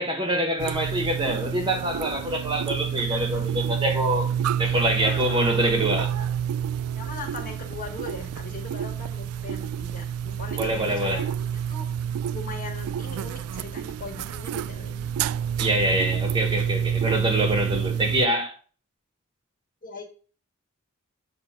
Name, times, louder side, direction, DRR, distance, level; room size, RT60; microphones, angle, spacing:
voice 1, 0.0-4.3 4.6-6.1 10.6-11.2 15.6-18.5, right 1 dB, 20° right, 1.1 m, -25 dB
sound 1, 0.6-18.3, right 8 dB, 85° right, 0.3 m, -28 dB
voice 2, 4.6-5.5 6.0-6.3 6.9-11.9 12.3-15.1 19.8-20.0, left 3 dB, 40° left, 1.7 m, -40 dB
7.4 x 2.6 x 5.7 m
head